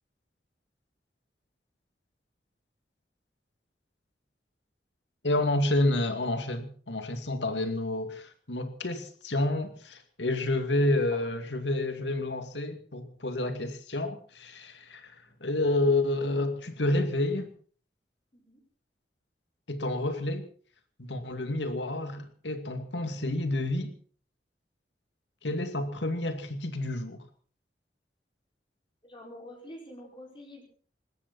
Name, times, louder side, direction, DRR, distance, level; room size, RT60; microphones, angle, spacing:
voice 1, 5.2-15.1 15.4-17.5 19.7-20.4 21.0-23.9 25.4-27.2, left 2 dB, 85° left, 2.4 m, -29 dB
voice 2, 29.0-30.6, left 1 dB, 30° left, 5.5 m, -47 dB
20.0 x 17.0 x 4.2 m
head